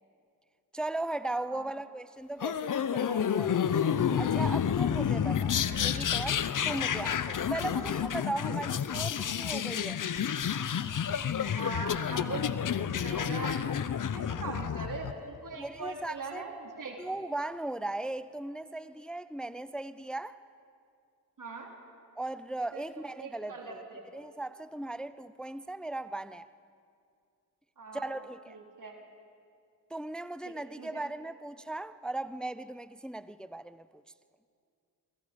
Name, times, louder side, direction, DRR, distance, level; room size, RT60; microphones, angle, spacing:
voice 1, 0.7-3.5 4.2-10.0 15.6-16.4 17.0-20.4 22.2-23.8 24.1-26.5 27.9-28.6 29.9-34.0, right 2 dB, ahead, 0.6 m, -37 dB
sound 1, 2.4-15.1, left 8 dB, 55° left, 0.9 m, -30 dB
voice 2, 11.6-12.5 12.9-13.6 14.1-17.0 21.4-21.7 22.7-24.0 27.8-28.2 28.5-29.1 30.4-31.0, right 4 dB, 55° right, 3.4 m, -41 dB
28.0 x 22.5 x 5.2 m
cardioid pair, 65°, 38 cm